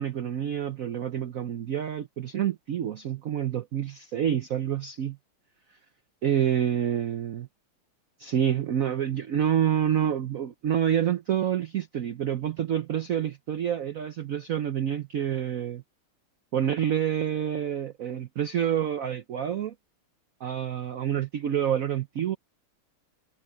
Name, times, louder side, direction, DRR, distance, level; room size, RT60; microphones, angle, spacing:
voice 1, 0.0-5.2 6.2-7.5 8.2-15.8 16.5-19.7 20.4-22.4, right 9 dB, 85° right, 0.7 m, -28 dB
omnidirectional pair, 2.4 m